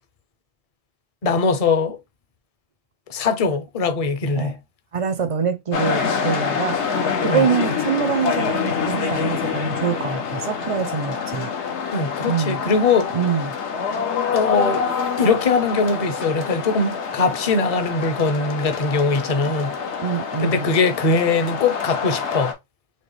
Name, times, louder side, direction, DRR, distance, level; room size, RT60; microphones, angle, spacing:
voice 1, 1.2-2.0 3.1-4.5 7.2-7.5 11.9-13.1 14.3-19.7 20.4-22.5, left 4 dB, 40° left, 0.6 m, -21 dB
voice 2, 4.9-11.5 12.3-12.6 13.1-13.5 20.0-20.7, right 6 dB, 50° right, 0.4 m, -25 dB
sound 1, 5.7-22.5, left 6 dB, 80° left, 1.1 m, -26 dB
4.4 x 2.8 x 3.1 m
omnidirectional pair, 1.2 m